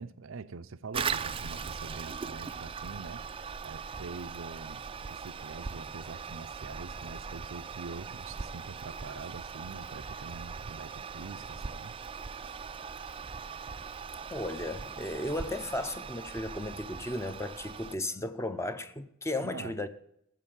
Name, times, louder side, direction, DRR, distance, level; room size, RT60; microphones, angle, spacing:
voice 1, 0.0-3.3 3.6-11.9 19.4-19.7, right 4 dB, 90° right, 0.6 m, -44 dB
Toilet flush, 0.9-18.0, right 6 dB, 25° right, 0.4 m, -40 dB
sound 1, 11.4-19.0, right 1 dB, 70° left, 4.0 m, -64 dB
voice 2, 14.3-19.9, left 1 dB, 15° left, 0.6 m, -35 dB
14.5 x 7.7 x 7.4 m
head